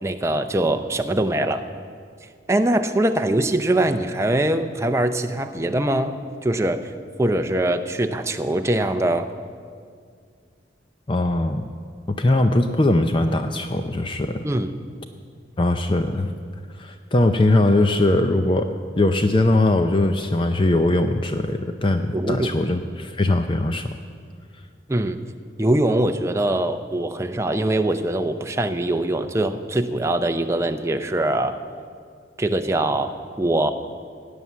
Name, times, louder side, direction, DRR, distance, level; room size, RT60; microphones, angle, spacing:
voice 1, 0.0-1.6 2.5-6.9 7.2-9.3 14.4-14.7 22.1-22.5 24.9-25.2 25.6-31.6 32.4-33.7, right 1 dB, 15° right, 6 dB, 0.6 m, -22 dB
voice 2, 11.1-11.7 12.1-14.4 15.6-16.3 16.8-18.7 19.0-23.9, left 2 dB, 30° left, 7 dB, 0.5 m, -20 dB
16.5 x 9.6 x 7.4 m, 2.1 s
head